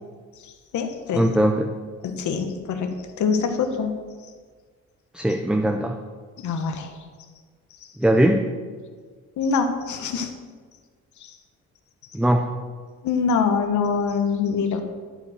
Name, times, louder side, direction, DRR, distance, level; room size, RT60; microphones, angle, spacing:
voice 1, 0.4-1.3 2.0-3.9 6.4-6.9 9.4-10.3 11.2-11.3 13.0-14.8, left 5 dB, 75° left, 6 dB, 1.2 m, -24 dB
voice 2, 1.1-1.7 5.1-6.0 8.0-8.5 12.1-12.5, right 1 dB, 5° right, 4 dB, 0.7 m, -20 dB
11.0 x 4.8 x 6.6 m, 1.5 s
cardioid pair, 90°, 30 cm